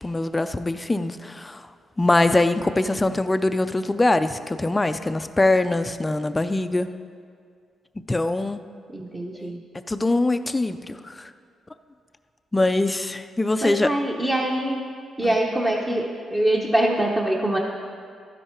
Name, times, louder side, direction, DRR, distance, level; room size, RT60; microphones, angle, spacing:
voice 1, 0.0-1.7 2.0-6.9 8.1-8.6 9.3-9.5 9.9-11.3 12.5-13.9 15.2-15.3, left 2 dB, 15° left, 10 dB, 0.4 m, -23 dB
voice 2, 8.9-9.6 13.6-14.8 15.2-17.6, right 1 dB, 20° right, -2 dB, 0.8 m, -24 dB
12.0 x 10.0 x 4.4 m, 2.2 s
cardioid pair, 130°, 0 cm